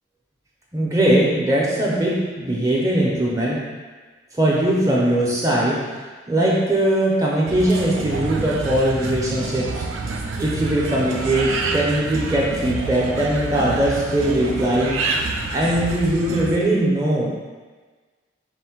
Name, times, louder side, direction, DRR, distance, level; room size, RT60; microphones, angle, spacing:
voice 1, 0.7-3.6 4.3-5.8 6.3-9.8 10.4-15.0 15.5-17.3, right 1 dB, 15° right, -5 dB, 0.6 m, -20 dB
sound 1, 7.5-16.6, right 3 dB, 85° right, 0.4 m, -28 dB
4.3 x 2.1 x 4.3 m, 1.4 s
head